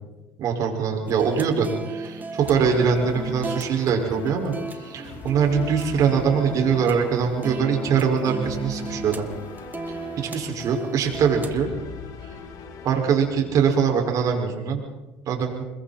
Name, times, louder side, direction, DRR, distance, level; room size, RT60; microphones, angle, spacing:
voice 1, 0.4-9.3 9.9-11.7 12.2-12.3 12.8-14.8 15.3-15.6, right 6 dB, 60° right, 2 dB, 5.6 m, -23 dB
sound 1, 1.0-11.6, right 3 dB, 25° right, 2.0 m, -36 dB
sound 2, 2.4-14.4, left 5 dB, 65° left, 3.9 m, -39 dB
28.0 x 22.0 x 4.4 m, 1.1 s
supercardioid pair, 80°, 7 cm